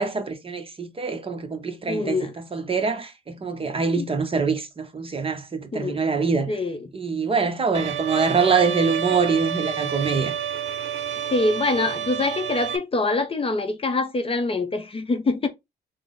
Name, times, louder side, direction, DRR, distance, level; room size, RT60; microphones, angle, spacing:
voice 1, 0.0-6.5 6.9-10.3, right 5 dB, 30° right, 0.7 m, -24 dB
voice 2, 1.9-2.3 4.0-4.1 5.7-6.0 6.5-6.9 11.3-15.5, left 3 dB, 30° left, 0.6 m, -24 dB
Bowed string instrument, 7.7-12.8, right 9 dB, 80° right, 0.5 m, -29 dB
3.7 x 2.0 x 3.6 m
cardioid pair, 90°, 20 cm